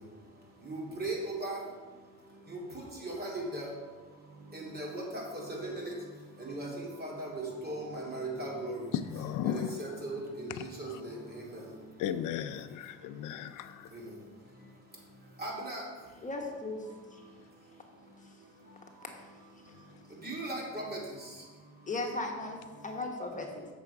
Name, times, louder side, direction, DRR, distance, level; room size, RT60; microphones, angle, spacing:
voice 1, 0.6-1.6 2.5-2.6 3.0-3.7 4.5-5.9 6.4-8.8 9.4-11.6 15.4-15.8 20.2-21.0, right 2 dB, 30° right, -2 dB, 2.6 m, -38 dB
voice 2, 8.9-9.8 10.6-11.0 12.0-13.9, left 10 dB, 85° left, 12 dB, 0.5 m, -35 dB
voice 3, 16.2-16.8 17.1-17.2 19.0-19.2 19.6-19.7 21.9-23.7, left 2 dB, 25° left, 2 dB, 1.2 m, -37 dB
7.6 x 6.2 x 4.7 m, 1.4 s
cardioid pair, 90°, 30 cm